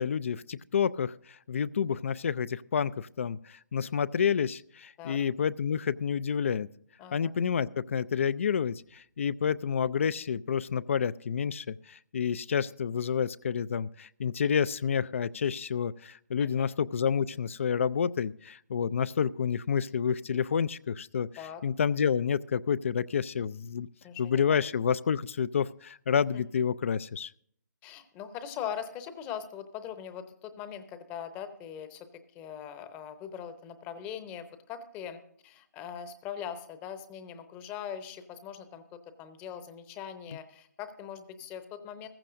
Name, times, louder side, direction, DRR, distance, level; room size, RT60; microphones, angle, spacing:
voice 1, 0.0-6.7 7.1-21.3 21.6-23.9 24.2-27.3, left 7 dB, 45° left, 19 dB, 0.4 m, -29 dB
voice 2, 7.0-7.3 16.4-16.7 21.4-21.6 24.0-24.6 26.3-26.4 27.8-32.1 32.3-42.1, left 8 dB, 15° left, 11 dB, 0.8 m, -41 dB
15.0 x 15.0 x 2.6 m, 0.64 s
figure-of-eight pair, 145°, 10 cm